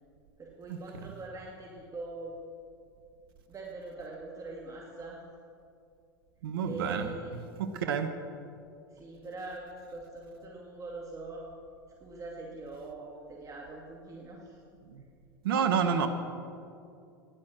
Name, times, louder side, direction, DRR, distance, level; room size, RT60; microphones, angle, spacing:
voice 1, 0.4-2.4 3.5-5.2 6.6-7.3 8.9-11.4 12.0-14.6 15.5-16.1, right 3 dB, 25° right, -2 dB, 2.1 m, -43 dB
voice 2, 6.4-7.1 7.6-8.1 14.8-15.0 15.4-16.1, right 7 dB, 70° right, 8 dB, 1.0 m, -29 dB
13.5 x 11.0 x 6.3 m, 2.5 s
hypercardioid pair, 85°, 12 cm